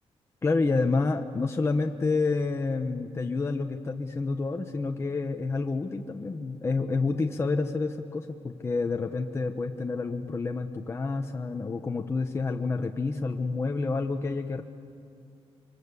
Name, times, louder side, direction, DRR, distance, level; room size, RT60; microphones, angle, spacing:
voice 1, 0.4-14.6, left 3 dB, 25° left, 4 dB, 1.0 m, -29 dB
27.5 x 25.0 x 8.3 m, 2.4 s
wide cardioid pair, 160°, 11 cm